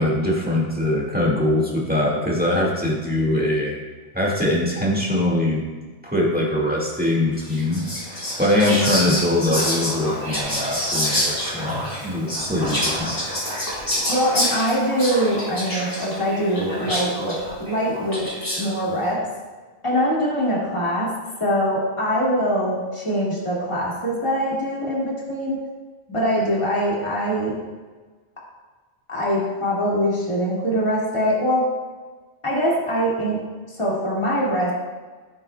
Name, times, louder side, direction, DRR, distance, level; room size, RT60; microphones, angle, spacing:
voice 1, 0.0-3.8 4.1-5.7 6.0-7.9 8.4-13.1, left 1 dB, 10° right, -3 dB, 1.8 m, -22 dB
Whispering, 7.4-18.7, equal, 55° left, 3.3 m, -27 dB
voice 2, 14.1-18.3 18.6-19.2 19.8-21.1 21.4-25.6 26.1-27.6 29.1-31.7 32.4-33.4 33.7-34.7, equal, 25° left, -6 dB, 2.2 m, -23 dB
15.5 x 7.8 x 2.3 m, 1.4 s
omnidirectional pair, 1.2 m